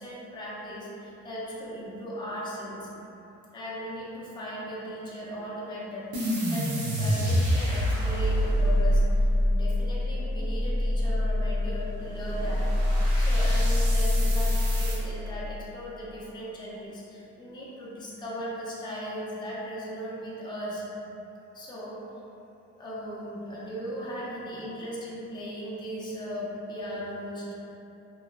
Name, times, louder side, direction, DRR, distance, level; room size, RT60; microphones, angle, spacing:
voice 1, 0.0-2.9 3.5-9.0 9.4-20.9 21.5-22.0 22.8-27.5, equal, 15° left, -7 dB, 0.5 m, -37 dB
sound 1, 6.1-15.0, left 1 dB, 75° right, 0.8 m, -25 dB
2.8 x 2.1 x 2.2 m, 3.0 s
cardioid pair, 90°, 30 cm